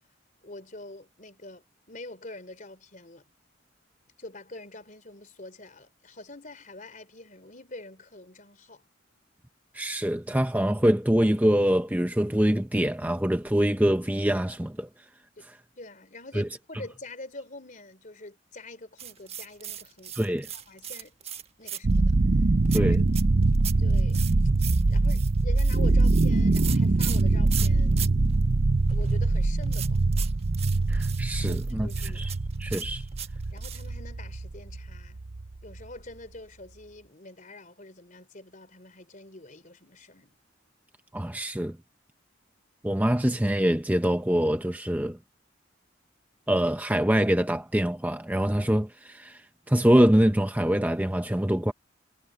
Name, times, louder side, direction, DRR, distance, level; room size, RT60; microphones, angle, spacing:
voice 1, 0.4-3.2 4.2-8.8 15.4-15.5 15.8-20.2 20.5-21.1 21.6-22.1 22.7-23.0 23.8-24.3 24.9-28.0 28.9-30.0 31.5-32.3 33.5-35.2 35.6-40.3, left 2 dB, 40° left, 3.6 m, -45 dB
voice 2, 9.7-14.9 15.5-15.6 16.3-16.5 20.1-20.5 22.7-23.0 30.9-32.3 32.6-33.1 41.1-41.8 42.8-45.2 46.5-51.7, equal, 10° right, 0.7 m, -24 dB
sound 1, 19.0-22.1 22.7-28.1 28.3-28.4 28.8-34.0, right 9 dB, 30° right, 1.4 m, -38 dB
sound 2, 21.8-35.8, right 2 dB, 45° right, 0.6 m, -23 dB
head